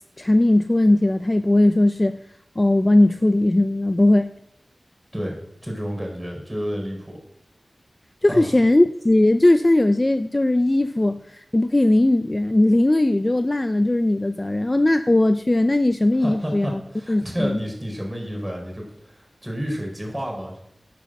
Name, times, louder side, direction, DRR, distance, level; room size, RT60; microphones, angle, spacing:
voice 1, 0.2-2.2 2.6-4.3 8.2-11.2 11.5-16.8 17.1-17.6, left 1 dB, 30° left, 9 dB, 0.5 m, -18 dB
voice 2, 5.6-7.2 8.3-8.5 16.1-20.6, equal, 15° right, 0 dB, 4.8 m, -30 dB
10.5 x 7.7 x 7.7 m, 0.78 s
wide cardioid pair, 70°, 0 cm